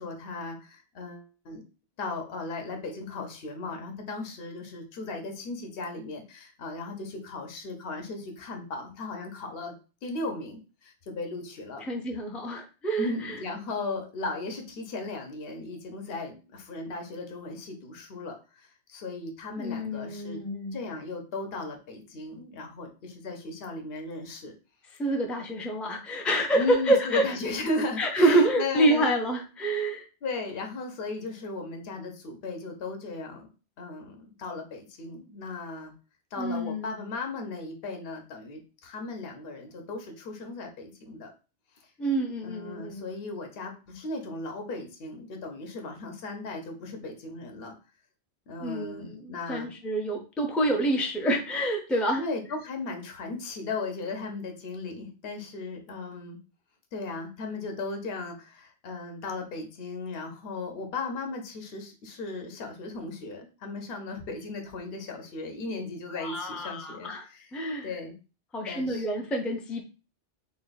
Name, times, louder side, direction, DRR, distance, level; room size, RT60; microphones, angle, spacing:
voice 1, 0.0-1.6 2.0-9.7 10.0-11.9 13.0-20.4 20.7-24.5 26.5-29.2 30.2-33.5 33.8-35.9 36.3-41.3 42.4-47.7 48.5-49.8 52.2-56.4 56.9-67.5 67.8-68.2 68.7-69.0, left 3 dB, 60° left, 3 dB, 1.0 m, -36 dB
voice 2, 11.9-13.1 19.6-20.8 25.0-27.3 28.0-30.1 36.4-37.0 42.0-43.1 48.6-52.2 65.7-65.8 66.2-67.2 67.5-67.9 68.5-69.8, right 1 dB, ahead, 2 dB, 0.3 m, -27 dB
3.7 x 2.3 x 3.9 m, 0.33 s
omnidirectional pair, 1.2 m